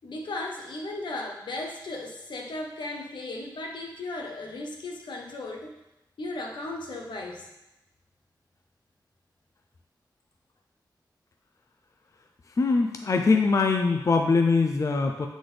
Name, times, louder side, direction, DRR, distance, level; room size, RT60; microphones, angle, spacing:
voice 1, 0.0-5.7 6.2-7.5, left 2 dB, 85° left, 0 dB, 0.9 m, -36 dB
voice 2, 12.6-15.3, left 4 dB, 45° left, 4 dB, 0.4 m, -22 dB
7.6 x 4.1 x 3.3 m, 0.92 s
wide cardioid pair, 110°, 8 cm